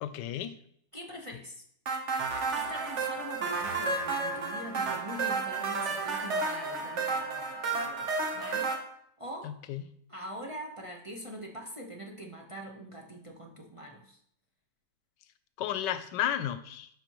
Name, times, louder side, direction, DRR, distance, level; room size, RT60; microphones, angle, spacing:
voice 1, 0.0-0.5 9.4-9.8 15.6-16.9, left 11 dB, 85° left, 12 dB, 1.2 m, -33 dB
voice 2, 0.9-1.6 2.2-8.7 9.2-9.6 10.1-14.2, equal, 25° right, -1 dB, 0.9 m, -43 dB
sound 1, 1.9-8.8, right 4 dB, 45° right, 1.3 m, -32 dB
12.0 x 5.1 x 3.1 m, 0.68 s
omnidirectional pair, 1.8 m